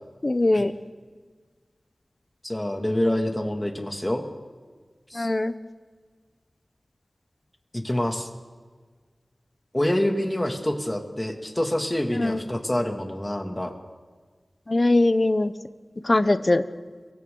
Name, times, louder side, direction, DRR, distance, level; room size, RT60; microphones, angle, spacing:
voice 1, 0.2-0.7 5.1-5.5 12.2-12.4 14.7-15.5 16.0-16.6, left 2 dB, 45° left, 11 dB, 0.9 m, -21 dB
voice 2, 2.4-4.2 5.1-5.3 7.7-8.3 9.7-13.7, left 1 dB, 20° left, 3 dB, 2.5 m, -26 dB
30.0 x 24.0 x 4.0 m, 1.5 s
wide cardioid pair, 60°, 0 cm